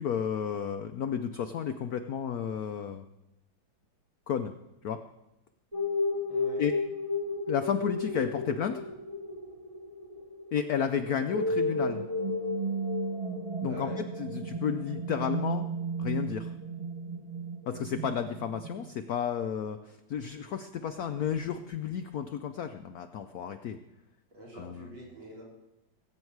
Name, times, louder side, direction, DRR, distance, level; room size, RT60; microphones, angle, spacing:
voice 1, 0.0-3.1 4.3-4.5 4.8-5.0 6.6-6.8 7.5-8.8 10.5-12.0 13.6-15.7 16.0-16.5 17.7-23.8 24.5-24.9, left 8 dB, 75° left, 8 dB, 0.8 m, -32 dB
sound 1, 5.7-18.9, left 1 dB, 25° right, 0.8 m, -33 dB
voice 2, 6.3-6.6 13.6-14.0 24.3-25.4, equal, 70° right, -5 dB, 4.6 m, -45 dB
20.5 x 8.8 x 4.7 m, 0.95 s
omnidirectional pair, 2.2 m